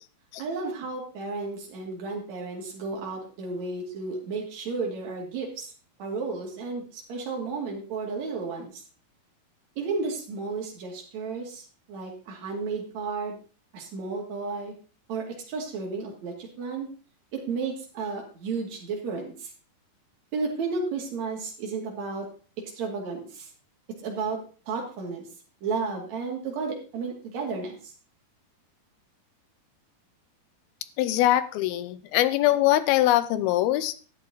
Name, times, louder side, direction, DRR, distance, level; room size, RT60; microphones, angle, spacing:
voice 1, 0.4-5.7 6.0-8.7 9.8-13.4 13.7-14.7 15.1-16.9 17.3-19.5 20.3-22.3 22.8-23.5 24.0-24.4 24.7-25.2 25.6-27.8, right 4 dB, 50° right, -1 dB, 3.5 m, -33 dB
voice 2, 31.0-33.9, left 14 dB, 90° left, 14 dB, 2.6 m, -22 dB
12.0 x 8.2 x 3.9 m, 0.37 s
omnidirectional pair, 4.3 m